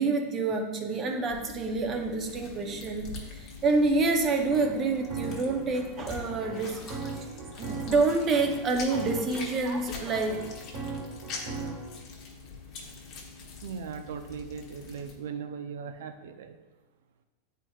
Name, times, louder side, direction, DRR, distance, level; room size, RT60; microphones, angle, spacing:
voice 1, 0.0-10.5, right 3 dB, 25° right, 4 dB, 0.7 m, -28 dB
sound 1, 1.3-15.1, left 4 dB, 30° left, 1.1 m, -44 dB
sound 2, 4.3-12.0, right 3 dB, 55° right, 1.5 m, -39 dB
voice 2, 13.6-16.6, right 6 dB, 75° right, 7 dB, 0.5 m, -38 dB
9.1 x 4.5 x 2.4 m, 1.1 s
supercardioid pair, 165°, 0 cm